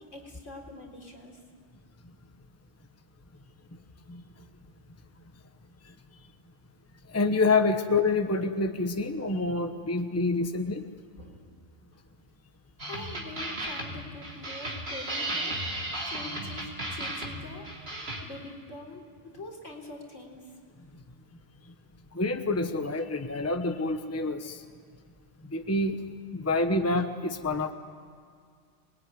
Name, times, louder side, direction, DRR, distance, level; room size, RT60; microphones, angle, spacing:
voice 1, 0.0-1.4 11.2-11.5 12.9-15.6 16.1-17.7 18.2-20.5, left 2 dB, 75° left, 0 dB, 4.2 m, -44 dB
voice 2, 7.1-10.8 22.1-24.6 25.5-26.0 26.3-27.7, left 3 dB, 15° left, 7 dB, 1.0 m, -27 dB
sound 1, 12.8-18.2, right 1 dB, 50° right, 3.4 m, -35 dB
26.0 x 20.5 x 9.6 m, 2.1 s
omnidirectional pair, 1.3 m